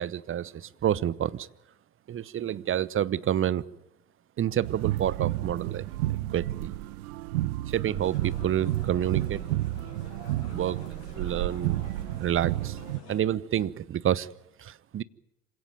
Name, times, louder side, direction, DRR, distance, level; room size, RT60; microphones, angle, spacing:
voice 1, 0.0-1.5 2.1-3.6 4.4-5.8 6.3-6.7 7.7-9.4 10.5-10.8 11.2-11.8 12.2-12.8 13.1-14.3 14.6-15.0, right 10 dB, 25° right, 0.9 m, -28 dB
sound 1, 4.6-13.0, right 16 dB, 65° right, 1.0 m, -31 dB
sound 2, 8.0-13.2, left 5 dB, 70° left, 6.3 m, -49 dB
27.0 x 17.5 x 9.3 m
figure-of-eight pair, 75°, 48 cm